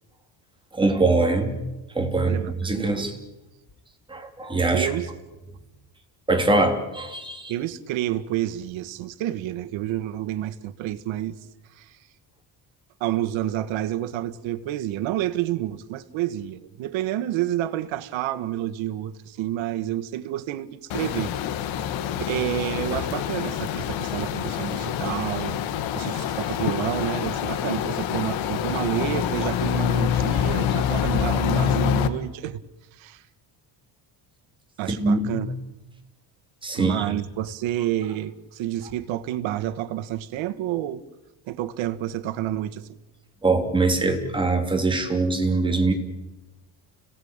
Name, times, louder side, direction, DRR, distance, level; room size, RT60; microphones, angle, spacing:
voice 1, 0.7-1.6 1.9-3.2 4.1-4.9 6.3-7.5 34.9-35.4 36.6-37.2 43.4-45.9, right 3 dB, 10° right, 3.2 m, -23 dB
voice 2, 2.2-3.0 4.7-5.1 7.5-11.4 11.8-12.0 13.0-21.3 21.6-21.8 22.3-25.6 25.9-32.6 32.9-33.2 34.8-35.5 36.7-41.0 41.5-42.9, right 13 dB, 85° right, 1.6 m, -29 dB
sound 1, 20.9-32.1, left 9 dB, 85° left, 2.1 m, -26 dB
30.0 x 18.5 x 8.9 m
cardioid pair, 170°, 45 cm